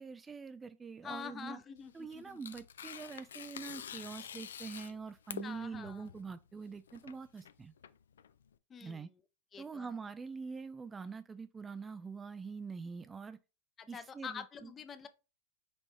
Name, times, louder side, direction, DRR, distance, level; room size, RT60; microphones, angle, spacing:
voice 1, 0.0-1.6 1.9-7.7 8.8-9.1 9.6-13.4 13.9-14.7, right 5 dB, 20° right, 0.3 m, -44 dB
voice 2, 1.0-2.4 5.4-6.1 8.7-9.2 9.5-9.9 13.8-15.1, left 6 dB, 25° left, 0.6 m, -46 dB
Tearing, 1.8-8.5, left 8 dB, 75° left, 0.3 m, -48 dB
5.3 x 3.0 x 3.3 m
figure-of-eight pair, 90°, 0 cm